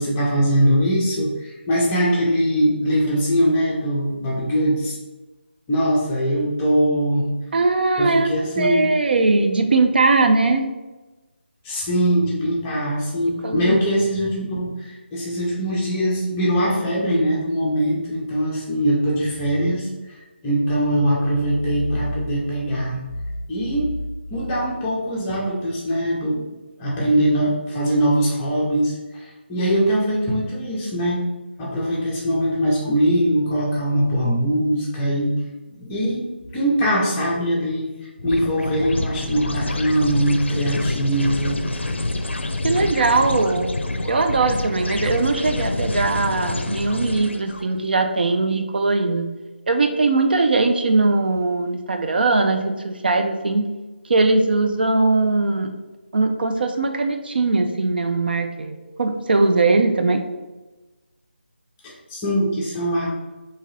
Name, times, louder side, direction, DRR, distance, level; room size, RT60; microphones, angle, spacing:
voice 1, 0.0-5.0 5.7-7.3 8.0-8.9 11.6-19.9 20.4-23.0 23.5-23.9 24.3-26.5 26.8-31.2 31.6-35.4 35.7-36.2 36.5-41.6 61.8-63.1, equal, 15° left, -5 dB, 0.6 m, -21 dB
voice 2, 7.5-8.3 8.6-10.6 13.4-13.8 42.6-43.7 44.0-49.3 49.7-53.7 54.0-55.7 56.1-60.2, right 3 dB, 55° right, 6 dB, 0.4 m, -20 dB
sound 1, 38.2-47.6, left 2 dB, 85° left, 0.4 m, -27 dB
3.6 x 2.8 x 3.1 m, 1.1 s
figure-of-eight pair, 165°, 6 cm